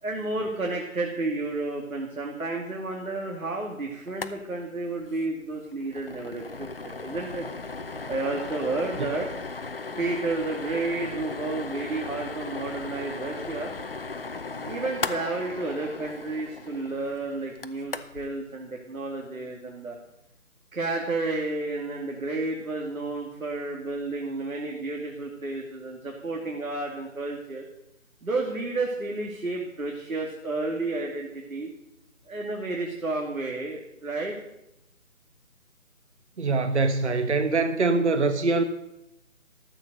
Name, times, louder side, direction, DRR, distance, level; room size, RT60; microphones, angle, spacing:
voice 1, 0.0-7.5 8.1-9.3 10.0-13.7 14.7-20.0 20.7-27.6 28.2-31.7 32.3-34.4, right 2 dB, 90° right, 2.5 m, -31 dB
sound 1, 4.1-4.4 4.6-4.7 5.0-5.2 5.6-18.3, left 3 dB, 45° left, 0.6 m, -37 dB
voice 2, 36.4-38.6, right 3 dB, 55° right, 1.2 m, -23 dB
13.5 x 7.5 x 6.7 m
figure-of-eight pair, 170°, 41 cm